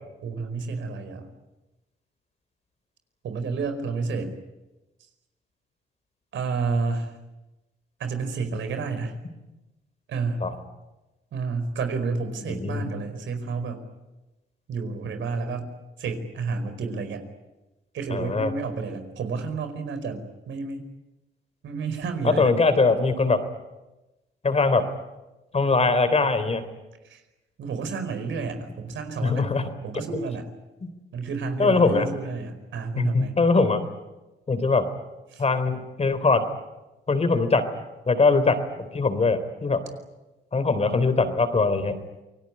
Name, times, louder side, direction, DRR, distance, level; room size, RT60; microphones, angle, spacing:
voice 1, 0.2-1.3 3.2-4.3 6.3-7.1 8.0-9.2 10.1-10.4 11.3-13.8 14.7-17.2 17.9-20.8 21.6-22.5 27.0-27.2 27.6-29.5 29.8-30.5 31.1-33.4 35.3-35.4, right 4 dB, 70° right, 8 dB, 4.9 m, -30 dB
voice 2, 12.5-12.8 18.1-18.5 22.2-23.4 24.4-24.8 25.5-26.6 29.2-29.6 30.8-30.9 31.6-32.0 33.0-33.8 34.5-34.8 35.4-36.4 37.1-37.6 38.1-38.6 38.9-39.8 40.5-42.0, left 3 dB, 30° left, 11 dB, 3.5 m, -21 dB
28.0 x 19.0 x 10.0 m, 1.1 s
cardioid pair, 90°, 20 cm